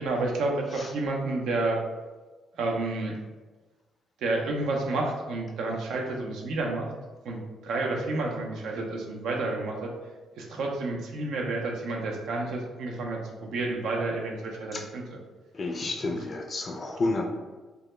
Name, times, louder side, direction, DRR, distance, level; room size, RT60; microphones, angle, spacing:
voice 1, 0.0-1.8 2.5-3.2 4.2-6.9 7.2-9.9 10.4-15.2 15.8-16.3, right 2 dB, 80° right, 1 dB, 0.4 m, -30 dB
voice 2, 15.5-17.2, left 2 dB, 40° left, 2 dB, 0.3 m, -30 dB
2.1 x 2.0 x 3.0 m, 1.3 s
cardioid pair, 90°, 0 cm